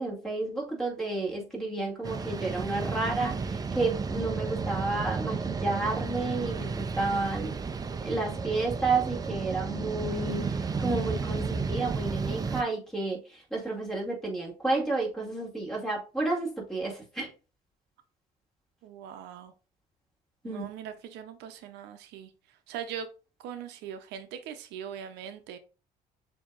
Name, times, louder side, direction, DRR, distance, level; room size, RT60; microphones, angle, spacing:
voice 1, 0.0-7.6 8.0-17.3 20.4-20.7, right 3 dB, 5° left, 2.1 m, -31 dB
sound 1, 2.0-12.6, right 4 dB, 20° right, 0.4 m, -32 dB
voice 2, 18.8-19.5 20.4-23.1 23.4-25.6, right 8 dB, 85° right, 0.6 m, -41 dB
7.0 x 2.8 x 2.4 m
cardioid pair, 110°, 17 cm